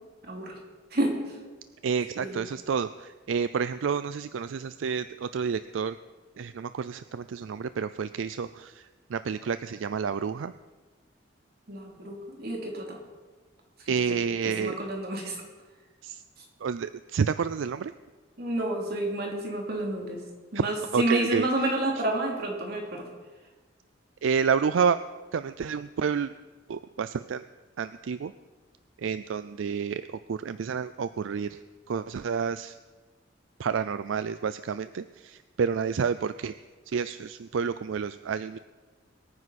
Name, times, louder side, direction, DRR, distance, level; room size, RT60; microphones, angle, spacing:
voice 1, 0.2-0.6 0.9-1.4 2.2-2.4 11.7-13.0 13.8-14.2 14.4-15.4 18.4-20.2 20.5-23.1, right 1 dB, 55° right, 0 dB, 2.9 m, -30 dB
voice 2, 1.8-5.9 6.4-8.8 9.1-10.5 13.9-14.8 16.0-16.2 16.6-17.9 20.9-21.5 24.2-25.0 25.3-26.3 26.7-27.4 27.8-28.3 29.0-30.0 30.3-31.5 31.9-32.7 33.6-36.5 36.9-38.6, right 6 dB, 80° right, 13 dB, 0.4 m, -29 dB
22.5 x 9.6 x 4.2 m, 1.3 s
head